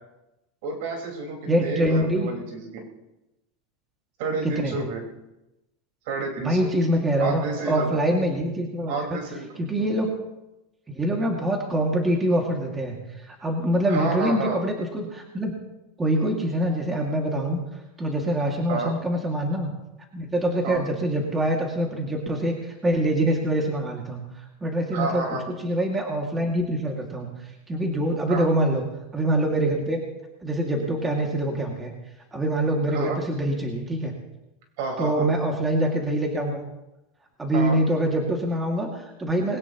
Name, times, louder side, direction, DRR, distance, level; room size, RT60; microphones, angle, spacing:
voice 1, 0.6-2.8 4.2-5.0 6.1-6.7 7.2-8.0 8.9-10.0 13.9-14.6 18.7-18.9 20.6-20.8 24.9-25.4 28.3-28.5 32.9-33.2 34.8-35.3 37.5-37.8, right 3 dB, 65° right, 1 dB, 4.7 m, -30 dB
voice 2, 1.5-2.3 4.4-4.8 6.4-9.2 9.6-10.1 10.9-15.5 16.0-17.6 18.0-19.7 20.1-25.3 25.6-28.8 29.1-30.0 30.4-31.9 32.3-34.1 35.0-36.6 37.4-39.6, right 1 dB, 15° right, 0 dB, 2.2 m, -25 dB
21.0 x 18.0 x 3.0 m, 0.96 s
supercardioid pair, 140°, 0 cm